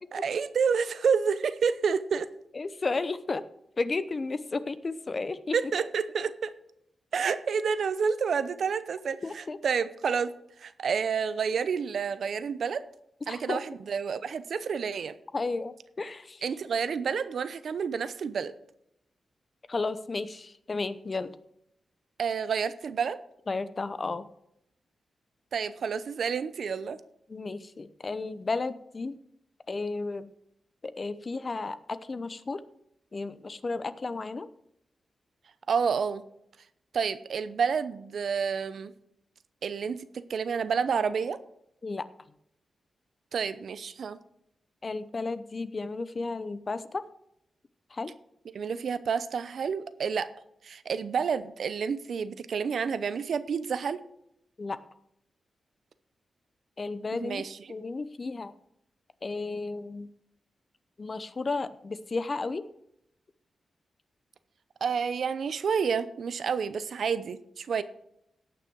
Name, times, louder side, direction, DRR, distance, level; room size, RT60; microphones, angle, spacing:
voice 1, 0.1-2.3 5.5-6.5 7.1-10.3 10.6-12.8 13.3-15.1 16.4-18.5 22.2-23.2 25.5-27.0 35.7-36.2 36.9-38.9 39.6-41.4 43.3-44.2 48.5-50.3 50.6-54.0 57.2-57.6 64.8-67.8, right 6 dB, 75° right, 14 dB, 0.7 m, -29 dB
voice 2, 2.5-3.4 3.8-5.6 9.2-9.6 13.3-13.6 15.3-16.4 19.7-21.3 23.5-24.3 27.3-29.2 29.7-30.3 30.8-32.6 33.1-34.5 41.8-42.1 44.8-47.0 47.9-48.1 54.6-54.8 56.8-58.5 59.2-60.1 61.0-62.6, left 3 dB, 40° left, 13 dB, 0.7 m, -33 dB
17.0 x 6.2 x 4.6 m, 0.78 s
cardioid pair, 80°, 0 cm